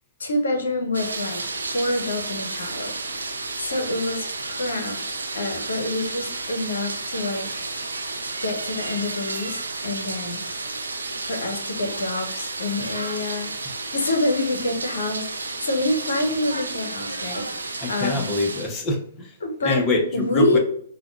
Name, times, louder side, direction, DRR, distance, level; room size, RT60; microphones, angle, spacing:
voice 1, 0.2-1.4 1.7-2.9 3.6-7.5 8.4-10.4 11.2-18.3 19.4-19.8 20.1-20.6, left 2 dB, 75° left, 5 dB, 0.8 m, -27 dB
sound 1, 0.9-18.7, right 3 dB, 90° right, 0.6 m, -32 dB
voice 2, 17.8-19.4 19.6-20.6, left 2 dB, 25° left, 2 dB, 0.7 m, -25 dB
4.9 x 2.2 x 2.3 m, 0.66 s
hypercardioid pair, 120°, 0 cm